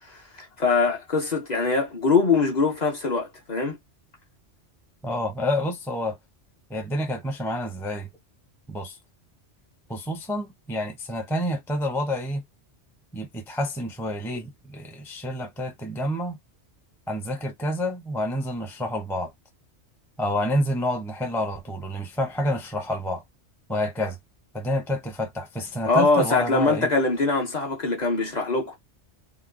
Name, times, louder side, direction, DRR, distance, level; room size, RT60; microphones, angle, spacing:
voice 1, 0.1-3.8 25.8-28.7, left 4 dB, 40° left, 0.8 m, -23 dB
voice 2, 5.0-6.2 6.7-8.1 8.7-9.0 9.9-12.4 13.1-16.4 17.1-19.3 20.2-23.2 23.7-24.2 24.5-26.9, left 1 dB, 5° left, 0.5 m, -28 dB
2.9 x 2.1 x 3.7 m
omnidirectional pair, 1.2 m